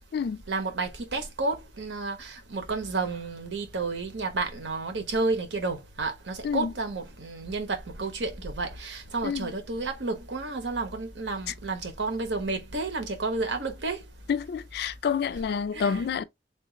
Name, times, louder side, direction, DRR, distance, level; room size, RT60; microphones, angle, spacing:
voice 1, 0.5-14.0 15.7-16.0, right 3 dB, 75° right, 1.0 m, -31 dB
voice 2, 14.3-16.2, left 6 dB, 60° left, 0.3 m, -28 dB
3.6 x 2.5 x 3.8 m
head